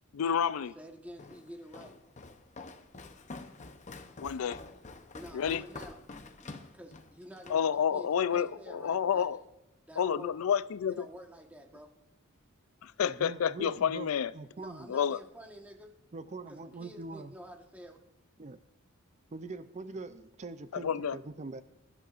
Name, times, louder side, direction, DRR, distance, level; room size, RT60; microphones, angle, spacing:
voice 1, 0.1-0.7 4.2-4.6 5.3-5.6 7.5-9.4 10.0-11.0 12.8-14.3 14.9-15.2 20.7-21.2, left 8 dB, 90° left, 0.4 m, -29 dB
voice 2, 0.7-2.0 5.1-6.0 6.3-9.4 9.9-10.3 10.9-11.9 14.6-16.0 16.5-18.0, equal, 5° right, 1.3 m, -49 dB
Walk footsteps, 1.2-7.7, left 3 dB, 35° left, 0.8 m, -47 dB
voice 3, 13.0-14.9 16.1-17.3 18.4-18.6 19.3-21.6, right 3 dB, 35° right, 0.5 m, -43 dB
21.0 x 12.0 x 2.5 m
head